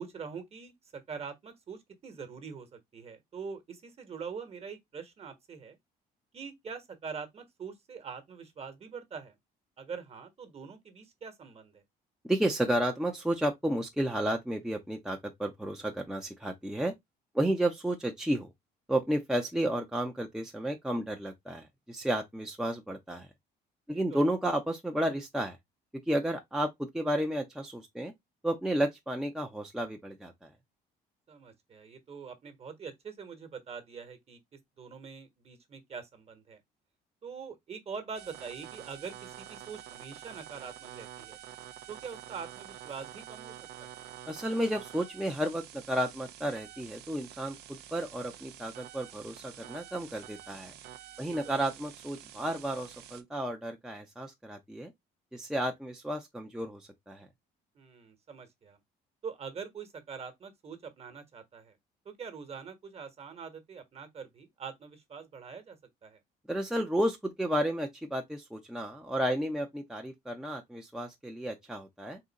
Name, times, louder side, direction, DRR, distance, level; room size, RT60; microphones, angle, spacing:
voice 1, 0.0-5.8 6.3-9.3 9.8-11.8 23.9-24.2 31.3-34.4 34.8-36.6 37.2-41.4 41.9-44.0 51.2-51.5 57.7-58.8 59.2-61.8 62.0-66.2, right 6 dB, 35° right, 1.2 m, -44 dB
voice 2, 12.2-16.9 17.3-18.5 18.9-23.3 23.9-25.6 26.1-28.1 28.4-30.5 44.3-50.7 51.2-54.9 55.3-57.3 66.5-72.2, right 1 dB, 5° right, 0.6 m, -32 dB
sound 1, 38.1-53.2, right 11 dB, 75° right, 0.6 m, -48 dB
3.8 x 2.7 x 4.0 m
cardioid pair, 110°, 17 cm